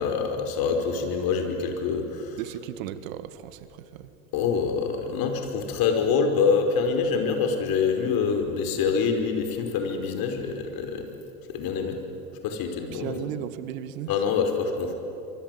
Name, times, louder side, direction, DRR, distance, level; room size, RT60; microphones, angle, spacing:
voice 1, 0.0-2.4 4.3-11.1 11.5-12.0 12.4-13.2 14.1-14.9, left 5 dB, 50° left, 5 dB, 5.1 m, -25 dB
voice 2, 2.4-4.1 12.9-14.2, right 11 dB, 65° right, 12 dB, 2.0 m, -36 dB
25.0 x 24.5 x 9.4 m, 2.9 s
hypercardioid pair, 90°, 43 cm